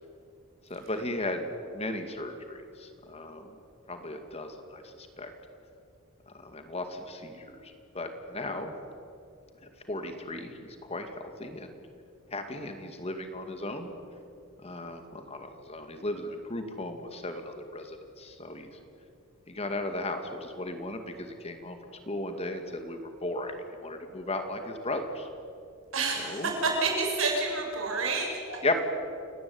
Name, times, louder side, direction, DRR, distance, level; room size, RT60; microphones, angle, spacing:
voice 1, 0.7-3.6 3.9-5.3 6.3-8.7 9.6-11.7 12.3-13.9 14.6-18.7 19.5-21.8 22.1-23.5 23.8-25.3 26.2-26.5 28.6-28.8, left 2 dB, 30° left, 6 dB, 2.3 m, -36 dB
voice 2, 25.9-28.6, right 3 dB, 65° right, 1 dB, 7.3 m, -29 dB
29.5 x 18.5 x 9.6 m, 2.5 s
head